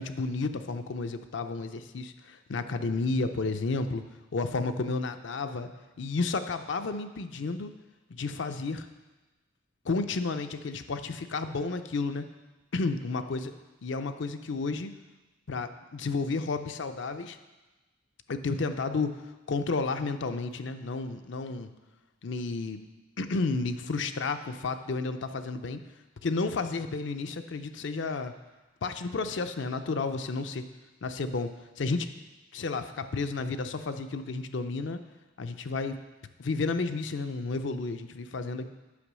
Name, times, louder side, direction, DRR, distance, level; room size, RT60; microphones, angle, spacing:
voice 1, 0.0-4.0 4.3-5.7 6.0-7.7 8.1-8.9 9.8-12.2 12.7-13.5 13.8-14.9 15.5-17.4 18.3-19.2 19.5-21.7 22.2-22.8 23.2-25.8 26.2-28.3 28.8-30.7 31.0-32.1 32.5-35.0 35.4-36.0 36.4-38.7, left 3 dB, 65° left, 8 dB, 0.5 m, -31 dB
8.4 x 5.4 x 6.1 m, 1.1 s
head